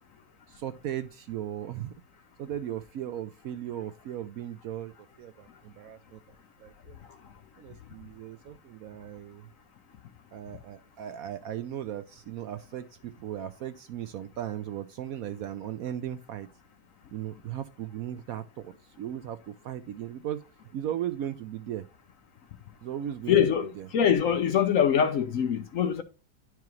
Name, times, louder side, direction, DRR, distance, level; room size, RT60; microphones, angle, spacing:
voice 1, 0.5-1.9 2.4-4.9 5.2-6.2 6.6-7.0 7.6-9.5 10.3-16.5 17.1-20.4 20.7-21.9 22.8-23.9, right 11 dB, 70° right, 0.9 m, -37 dB
voice 2, 23.3-26.0, left 8 dB, 60° left, 0.9 m, -24 dB
10.5 x 4.8 x 3.0 m
omnidirectional pair, 1.9 m